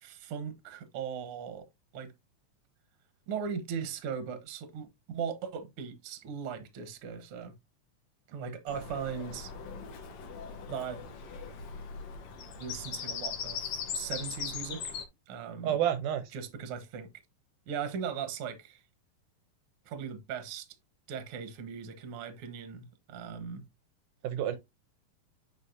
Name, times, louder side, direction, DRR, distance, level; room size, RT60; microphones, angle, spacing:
voice 1, 0.0-1.7 1.9-2.1 3.3-7.5 8.3-9.5 10.7-11.0 12.6-14.9 15.3-15.8 16.3-17.1 17.7-18.8 19.8-20.7 21.1-23.6, right 7 dB, 55° right, 1.6 m, -38 dB
Bird vocalization bird call bird song, 8.7-15.0, left 6 dB, 65° left, 2.1 m, -39 dB
voice 2, 15.6-16.3 24.2-24.6, right 10 dB, 80° right, 2.1 m, -29 dB
8.3 x 5.0 x 2.6 m
omnidirectional pair, 3.8 m